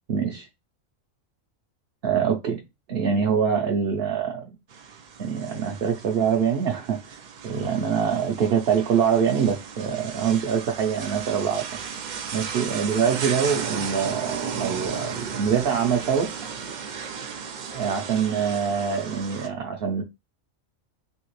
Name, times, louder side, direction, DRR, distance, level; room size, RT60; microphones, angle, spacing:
voice 1, 0.1-0.5 2.0-2.6 2.9-4.5 5.2-11.7 12.3-16.3 17.7-20.0, right 7 dB, 55° right, 0.8 m, -24 dB
sound 1, 4.7-19.5, right 6 dB, 75° right, 0.4 m, -35 dB
3.5 x 2.8 x 3.0 m
omnidirectional pair, 1.4 m